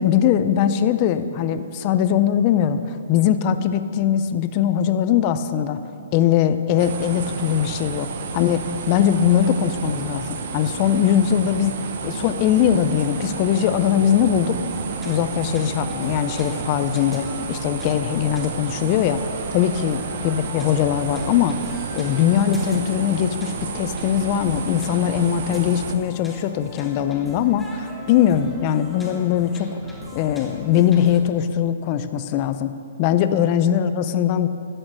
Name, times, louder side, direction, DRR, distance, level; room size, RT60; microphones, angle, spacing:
voice 1, 0.0-5.8 6.1-11.7 12.0-14.6 15.0-19.2 19.5-29.8 30.1-32.7 33.0-34.5, left 9 dB, 30° left, 11 dB, 0.4 m, -21 dB
sound 1, 6.8-25.9, right 5 dB, 50° right, 0.8 m, -31 dB
sound 2, 14.7-31.2, left 1 dB, 5° left, 0.9 m, -40 dB
11.0 x 6.3 x 6.3 m, 2.6 s
hypercardioid pair, 155°, 0 cm